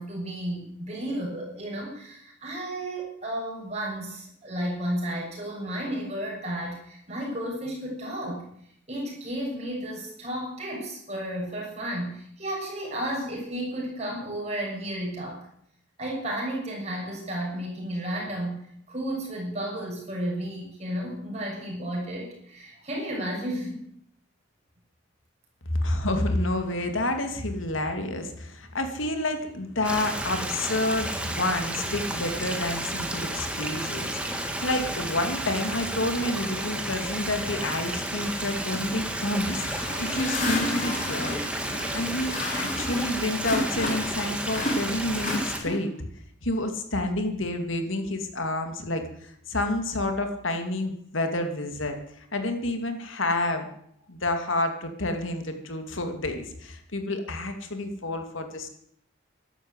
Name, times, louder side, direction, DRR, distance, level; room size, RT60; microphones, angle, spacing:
voice 1, 0.0-8.4 8.9-15.5 16.0-23.8, right 1 dB, 35° right, -2 dB, 6.9 m, -33 dB
voice 2, 25.7-41.4 41.9-45.9 46.4-53.7 54.1-58.7, left 1 dB, 85° left, 6 dB, 2.6 m, -29 dB
Stream, 29.8-45.6, right 1 dB, 5° right, 1.8 m, -32 dB
sound 1, 39.4-44.2 44.5-46.0, left 1 dB, 40° left, 4.2 m, -31 dB
13.5 x 12.0 x 8.2 m, 0.68 s
head